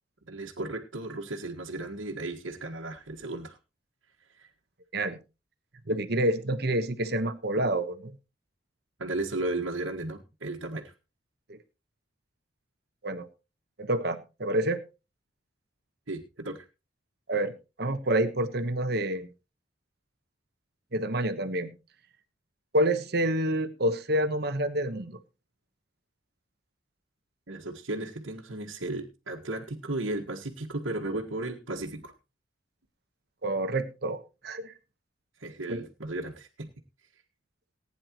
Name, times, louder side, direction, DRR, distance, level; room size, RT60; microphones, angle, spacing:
voice 1, 0.2-3.6 4.3-4.5 9.0-10.9 16.1-16.6 27.5-32.1 35.4-36.7, right 2 dB, 85° right, -3 dB, 1.7 m, -35 dB
voice 2, 5.9-8.1 11.5-11.6 13.0-13.3 13.8-14.8 17.3-17.5 17.8-19.3 20.9-21.7 22.7-25.2 33.4-34.2 34.4-34.7 35.7-35.8, right 1 dB, 55° right, 10 dB, 1.2 m, -28 dB
19.5 x 9.9 x 3.1 m, 0.29 s
head